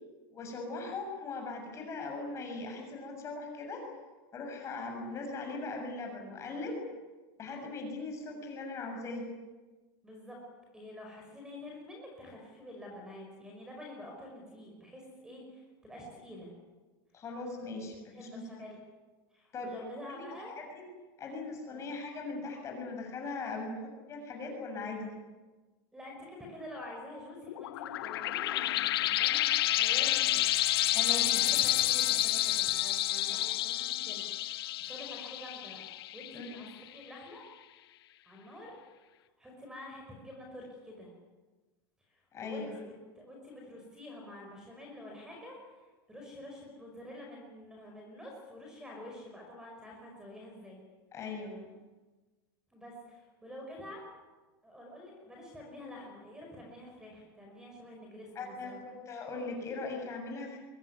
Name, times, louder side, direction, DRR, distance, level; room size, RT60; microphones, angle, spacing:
voice 1, 0.3-3.8 4.3-6.8 7.4-9.3 17.1-18.4 19.5-19.7 20.1-20.2 20.6-20.9 21.2-25.1 30.9-31.7 33.3-33.7 36.3-36.6 42.3-42.7 51.1-51.7 58.4-60.6, left 3 dB, 25° left, 2 dB, 6.9 m, -40 dB
voice 2, 10.0-10.4 10.7-16.5 18.1-18.8 19.3-20.6 21.7-21.9 25.9-30.4 31.1-35.8 36.1-37.4 38.2-38.8 39.4-41.1 42.1-50.8 52.7-54.1 54.6-58.9, left 1 dB, 5° right, 1 dB, 5.3 m, -48 dB
sound 1, 27.5-36.7, left 15 dB, 90° left, 0.9 m, -29 dB
23.5 x 20.0 x 9.6 m, 1.2 s
supercardioid pair, 160°, 12 cm